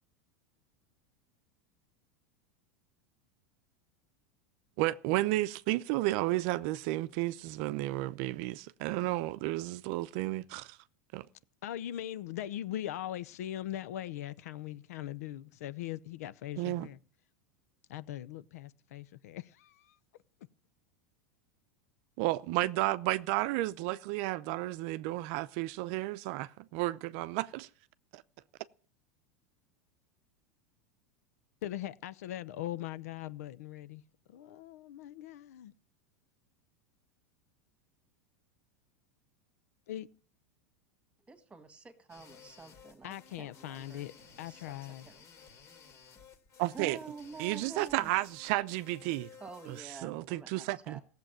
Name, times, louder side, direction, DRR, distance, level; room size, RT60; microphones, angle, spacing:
voice 1, 4.8-8.5 8.8-10.8 11.1-11.3 16.6-16.9 22.2-27.7 28.1-28.2 46.6-47.0 47.4-49.3 49.7-51.0, right 18 dB, 55° right, 0.7 m, -32 dB
voice 2, 11.6-17.0 17.9-20.0 31.6-34.0 34.3-35.7 39.9-40.1 43.0-44.1 44.4-45.1, left 12 dB, 80° left, 0.8 m, -40 dB
voice 3, 41.3-44.0 44.5-44.8 45.1-45.2 46.7-48.1 49.4-51.0, right 4 dB, 15° right, 2.0 m, -48 dB
sound 1, 42.1-49.8, left 6 dB, 40° left, 2.6 m, -57 dB
16.0 x 7.6 x 9.0 m
supercardioid pair, 140°, 8 cm